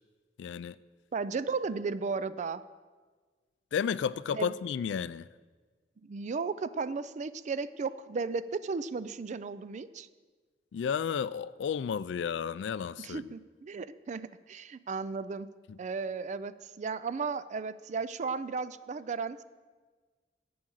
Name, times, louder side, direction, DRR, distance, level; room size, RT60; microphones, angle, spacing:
voice 1, 0.4-0.8 3.7-5.3 10.7-13.3 15.7-15.8, left 7 dB, 75° left, 0.3 m, -32 dB
voice 2, 1.1-2.6 4.3-4.5 6.0-10.1 13.0-15.5 15.8-19.4, right 4 dB, 40° right, 0.4 m, -35 dB
11.5 x 8.6 x 6.3 m
head